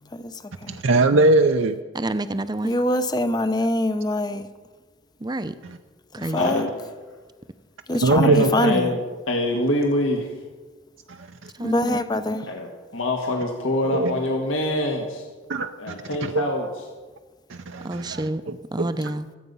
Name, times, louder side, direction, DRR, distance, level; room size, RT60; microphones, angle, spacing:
voice 1, 0.1-0.8 2.6-4.5 6.2-6.7 7.9-9.0 11.6-12.5, left 1 dB, 20° left, 0.6 m, -24 dB
voice 2, 0.7-1.8 8.0-8.7 11.1-11.5 13.9-14.1 15.5-15.9 16.2-16.4 17.5-18.3 18.8-18.9, right 2 dB, 75° right, 0.6 m, -21 dB
voice 3, 1.9-2.7 5.2-5.5 6.1-6.5 11.6-12.0 17.8-18.4 18.7-19.3, right 1 dB, 20° right, 0.6 m, -28 dB
voice 4, 6.4-6.7 8.2-9.0 9.3-10.3 12.5-12.7 12.9-15.3 15.8-16.7, left 1 dB, 80° left, 1.7 m, -24 dB
24.5 x 8.3 x 5.5 m
head